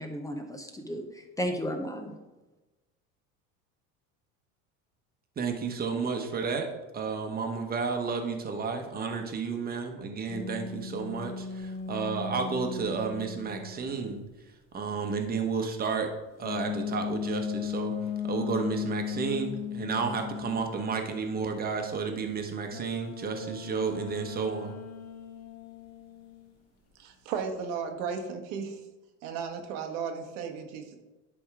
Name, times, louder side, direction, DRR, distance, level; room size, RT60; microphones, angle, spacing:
voice 1, 0.0-2.1, equal, 10° left, 4 dB, 0.7 m, -34 dB
voice 2, 5.4-6.7 6.9-14.2 14.7-16.1 16.4-17.9 18.2-24.8, right 5 dB, 25° right, 4 dB, 1.1 m, -32 dB
sound 1, 10.3-14.1 16.4-20.7 22.7-26.5, left 7 dB, 45° left, 1.1 m, -37 dB
voice 3, 27.0-28.8 29.2-31.0, right 6 dB, 85° right, 5 dB, 1.3 m, -35 dB
10.5 x 3.6 x 4.8 m, 1.1 s
supercardioid pair, 125°, 36 cm